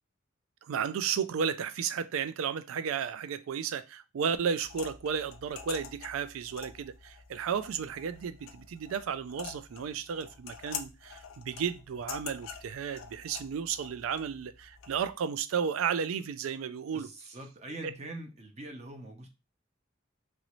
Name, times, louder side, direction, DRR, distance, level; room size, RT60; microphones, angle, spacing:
voice 1, 0.7-17.1, right 7 dB, 85° right, 0.4 m, -33 dB
sound 1, 4.6-15.1, left 7 dB, 85° left, 0.4 m, -46 dB
voice 2, 16.9-19.3, right 1 dB, 35° right, 0.6 m, -43 dB
3.0 x 2.6 x 3.0 m
head